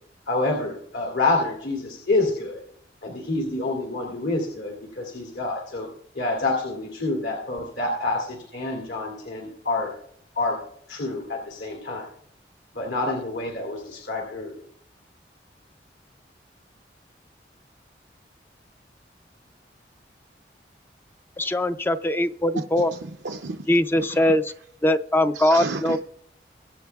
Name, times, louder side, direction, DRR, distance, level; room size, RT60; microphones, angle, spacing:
voice 1, 0.3-2.6 3.0-5.9 6.1-9.9 10.4-10.6 10.9-12.1 12.7-14.6, left 2 dB, 75° left, -1 dB, 2.5 m, -27 dB
voice 2, 21.4-22.9 23.7-24.4 24.8-26.0, left 1 dB, 10° left, 11 dB, 0.4 m, -21 dB
voice 3, 22.9-23.7 23.9-24.3 25.3-26.0, right 3 dB, 80° right, 3 dB, 0.6 m, -33 dB
23.0 x 8.5 x 2.3 m, 0.68 s
head